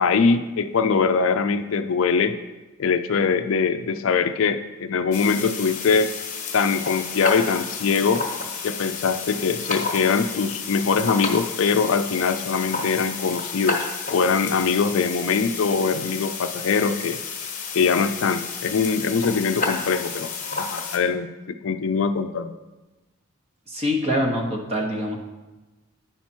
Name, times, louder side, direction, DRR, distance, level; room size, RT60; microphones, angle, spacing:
voice 1, 0.0-2.4 2.8-6.1 6.5-8.2 8.6-17.2 17.7-20.3 20.6-21.3 21.6-22.5, left 5 dB, 60° left, 9 dB, 0.4 m, -22 dB
sound 1, 5.1-21.0, left 4 dB, 35° left, 1.2 m, -31 dB
voice 2, 23.7-25.2, equal, 25° right, 1 dB, 1.1 m, -24 dB
9.4 x 5.8 x 4.4 m, 1.1 s
head